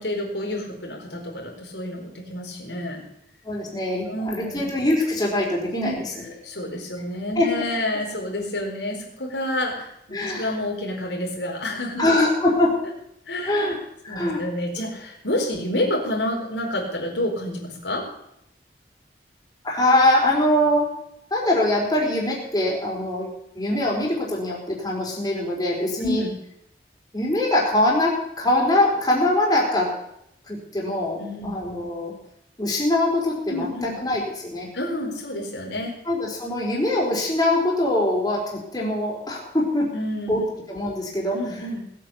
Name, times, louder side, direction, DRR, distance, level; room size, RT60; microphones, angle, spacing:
voice 1, 0.0-3.0 4.1-4.6 5.8-6.0 6.4-12.0 13.3-13.7 14.1-18.1 26.0-26.3 31.2-31.6 33.5-33.9 34.7-36.0 39.9-40.4 41.3-41.9, left 1 dB, 85° left, -1 dB, 4.6 m, -29 dB
voice 2, 3.4-5.9 7.4-7.5 10.1-10.5 12.0-12.7 13.4-13.7 14.0-14.4 19.6-20.9 21.3-26.2 27.1-29.9 30.5-32.1 32.6-34.7 36.0-39.9 40.3-40.4 40.7-41.4, left 1 dB, 20° left, -3 dB, 4.4 m, -23 dB
19.5 x 8.7 x 7.1 m, 0.76 s
head